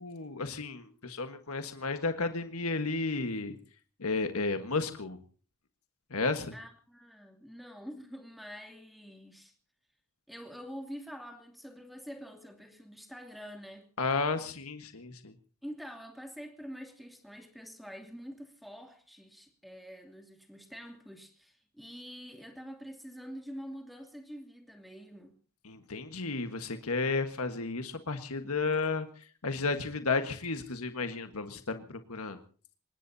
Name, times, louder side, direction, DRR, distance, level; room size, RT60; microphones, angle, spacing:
voice 1, 0.0-3.6 4.0-5.2 6.1-6.5 14.0-15.3 25.6-32.4, left 3 dB, 85° left, 1.5 m, -33 dB
voice 2, 6.5-9.5 10.3-13.9 15.6-25.4, equal, ahead, 2.6 m, -46 dB
25.0 x 20.5 x 2.8 m
head